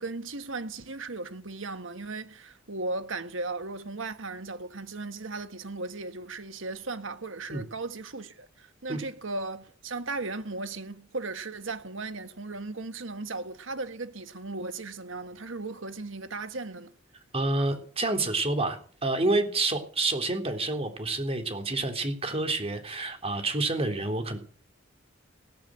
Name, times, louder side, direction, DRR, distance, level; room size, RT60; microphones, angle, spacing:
voice 1, 0.0-16.9, right 3 dB, 75° right, 1.7 m, -36 dB
voice 2, 17.3-24.4, right 2 dB, 30° right, 3.6 m, -28 dB
17.5 x 9.7 x 7.7 m
head